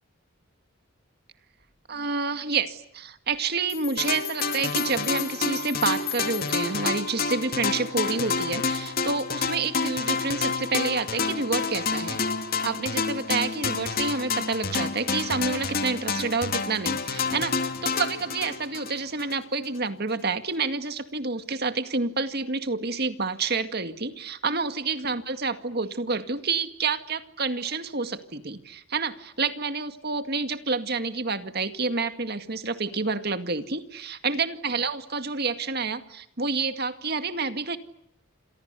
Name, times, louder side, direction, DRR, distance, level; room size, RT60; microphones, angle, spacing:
voice 1, 1.9-12.2 12.6-37.8, right 4 dB, 50° right, 9 dB, 2.1 m, -29 dB
sound 1, 3.3-3.4 3.7-6.8, left 16 dB, 85° left, 5.3 m, -38 dB
sound 2, 4.0-19.4, left 4 dB, 45° left, 2.4 m, -29 dB
29.5 x 27.5 x 7.0 m, 0.75 s
head